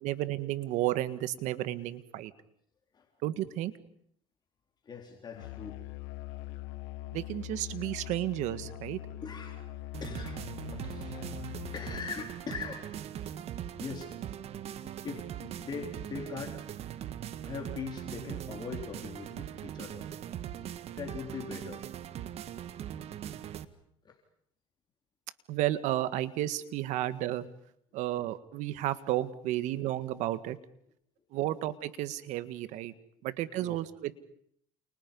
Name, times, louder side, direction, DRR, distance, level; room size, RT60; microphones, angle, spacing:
voice 1, 0.0-2.3 3.2-3.7 7.1-9.0 25.5-27.5 27.9-30.6 31.3-32.9 33.2-34.1, right 14 dB, 70° right, 12 dB, 1.7 m, -32 dB
voice 2, 4.8-5.8 9.2-9.6 10.0-11.4 11.7-13.3 13.8-14.1 14.6-16.6 17.4-20.1 21.0-21.8 22.9-23.0 24.0-24.2 33.6-33.8, left 5 dB, 35° left, 1 dB, 4.0 m, -42 dB
Musical instrument, 5.3-12.3, left 14 dB, 85° left, 1.7 m, -42 dB
sound 1, 9.9-23.6, right 10 dB, 55° right, 1.7 m, -41 dB
30.0 x 29.0 x 5.5 m, 0.68 s
supercardioid pair, 100°, 13 cm